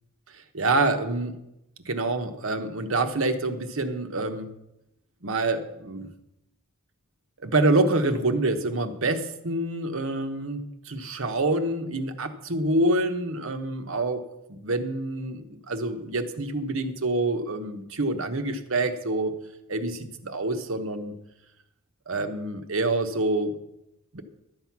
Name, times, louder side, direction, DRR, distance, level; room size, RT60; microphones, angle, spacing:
voice 1, 0.3-1.4 1.8-4.5 5.2-6.1 7.4-14.2 14.5-19.3 19.7-21.1 22.1-23.6 24.1-24.2, right 2 dB, 65° right, 7 dB, 1.0 m, -26 dB
12.0 x 7.8 x 5.9 m, 0.88 s
head